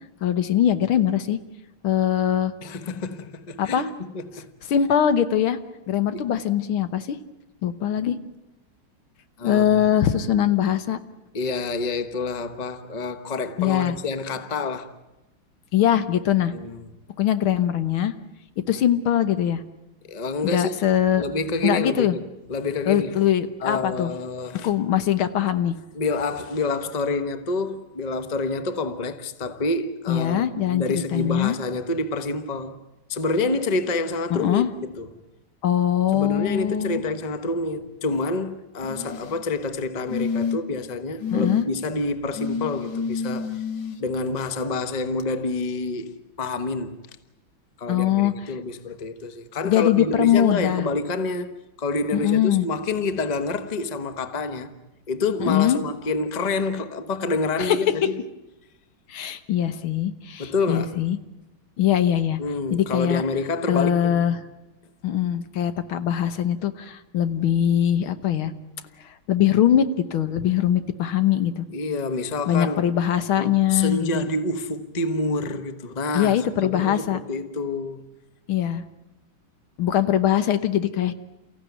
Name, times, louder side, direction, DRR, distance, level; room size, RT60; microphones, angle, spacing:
voice 1, 0.2-1.4 1.8-2.5 3.6-3.9 4.7-5.6 5.9-7.2 7.6-8.2 9.4-11.0 13.6-14.0 15.7-16.5 17.2-18.1 18.7-19.6 20.4-21.2 21.6-22.1 22.9-24.1 24.6-25.8 30.1-31.6 34.3-34.7 35.6-37.0 41.3-41.7 47.9-48.3 49.6-50.9 52.1-52.7 55.4-55.8 57.6-57.8 59.1-61.2 61.8-62.4 62.7-63.2 63.7-64.4 65.0-68.5 69.0-71.7 72.5-74.2 76.1-77.2 78.5-78.8 79.8-81.1, left 10 dB, 75° left, 1.9 m, -22 dB
voice 2, 2.6-4.5 6.1-6.2 9.4-10.1 11.3-14.9 16.4-16.9 20.0-20.7 21.1-23.2 23.6-24.7 25.9-32.8 33.1-35.1 36.1-43.6 44.0-47.0 47.8-54.7 55.1-58.2 60.4-61.0 62.4-64.3 71.7-72.9 73.4-78.0, left 3 dB, 25° left, 1.0 m, -28 dB
sound 1, 38.8-39.4 40.1-40.8 41.2-41.6 42.4-44.0 45.2-45.3, left 5 dB, 60° left, 2.0 m, -28 dB
29.5 x 15.5 x 9.3 m
omnidirectional pair, 2.3 m